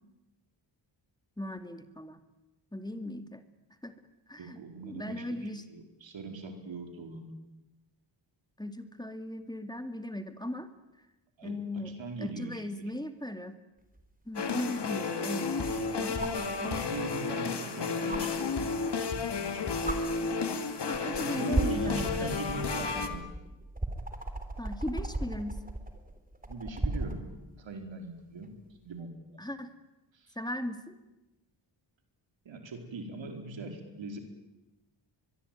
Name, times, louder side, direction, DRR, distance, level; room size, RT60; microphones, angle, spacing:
voice 1, 1.4-2.2 2.7-3.4 3.8-4.0 4.3-4.6 4.8-5.7 8.6-10.7 11.4-11.9 12.2-13.6 14.3-16.2 16.6-16.8 20.8-22.4 24.6-25.6 29.4-29.7 30.4-30.9, left 1 dB, 10° left, 9 dB, 2.3 m, -38 dB
voice 2, 4.4-7.3 11.4-12.9 15.7-20.0 21.1-23.3 26.4-27.3 27.6-28.5 28.8-29.4 30.1-30.4 32.4-34.2, right 3 dB, 75° right, 5 dB, 4.7 m, -41 dB
sound 1, 14.0-14.1 16.2-16.5 18.1-18.2 19.4-19.5 19.8-20.0 20.9-21.2 21.5-27.2 28.9-29.0, right 2 dB, 20° right, 4.0 m, -35 dB
sound 2, 14.3-23.1, left 4 dB, 60° left, 2.8 m, -32 dB
23.0 x 23.0 x 9.4 m, 1.0 s
cardioid pair, 65°, 46 cm